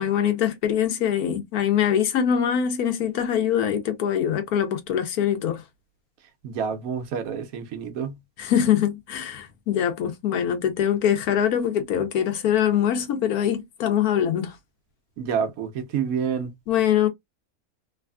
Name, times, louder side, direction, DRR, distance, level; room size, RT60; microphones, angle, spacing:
voice 1, 0.0-5.6 8.4-14.5 16.7-17.1, left 9 dB, 85° left, 1.3 m, -23 dB
voice 2, 6.4-8.2 15.2-16.5, right 7 dB, 75° right, 1.1 m, -28 dB
3.2 x 2.4 x 2.3 m
omnidirectional pair, 1.5 m